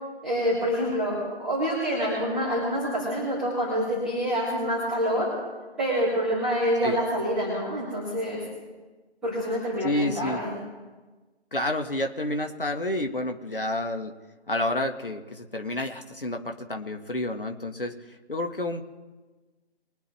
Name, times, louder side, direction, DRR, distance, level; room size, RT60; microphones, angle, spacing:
voice 1, 0.2-5.3 5.8-8.4 9.2-10.6, equal, ahead, -15 dB, 3.8 m, -27 dB
voice 2, 9.8-10.4 11.5-14.1 14.5-18.0 18.3-18.8, left 1 dB, 55° left, 5 dB, 1.6 m, -29 dB
23.5 x 9.3 x 3.4 m, 1.3 s
figure-of-eight pair, 160°, 33 cm